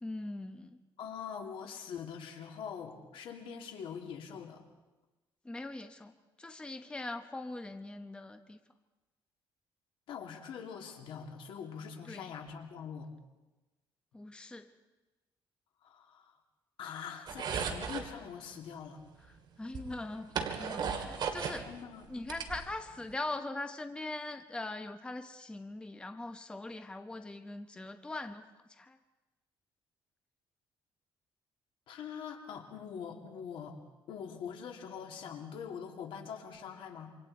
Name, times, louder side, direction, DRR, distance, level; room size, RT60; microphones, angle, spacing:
voice 1, 0.0-0.7 5.4-6.1 6.4-8.6 12.1-12.3 14.1-14.7 19.6-20.3 20.6-21.7 22.1-29.0, left 2 dB, 10° left, 7 dB, 0.9 m, -41 dB
voice 2, 1.0-4.6 10.1-13.1 15.8-16.3 16.8-19.0 21.7-22.3 31.9-33.8 34.1-37.1, left 7 dB, 75° left, 2 dB, 2.9 m, -43 dB
sound 1, 17.3-18.1 19.2-19.3 19.7-21.6 22.0-23.1, right 6 dB, 55° right, 2.5 m, -36 dB
28.0 x 25.5 x 4.3 m, 1.1 s
cardioid pair, 140°, 9 cm